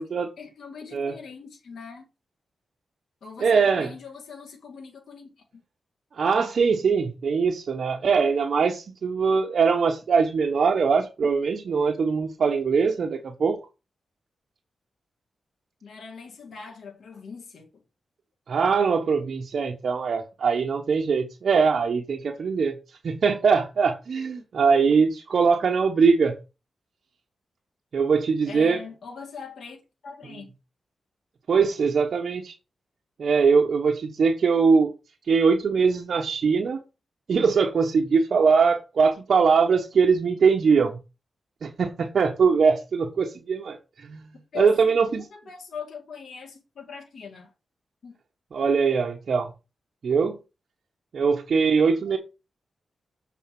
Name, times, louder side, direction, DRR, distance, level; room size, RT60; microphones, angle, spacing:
voice 1, 0.4-2.1 3.2-5.6 15.8-17.7 28.5-29.8 30.0-30.5 44.5-47.5 48.0-48.2, left 5 dB, 70° left, 2.0 m, -41 dB
voice 2, 3.4-3.9 6.1-13.6 18.5-22.7 23.0-26.3 27.9-28.8 31.5-32.5 33.2-34.9 35.3-36.8 37.3-41.0 41.6-44.2 44.6-45.2 48.5-49.5 50.0-50.4 51.1-52.2, right 5 dB, 65° right, 1.0 m, -22 dB
7.1 x 4.2 x 5.9 m
cardioid pair, 80°, 0 cm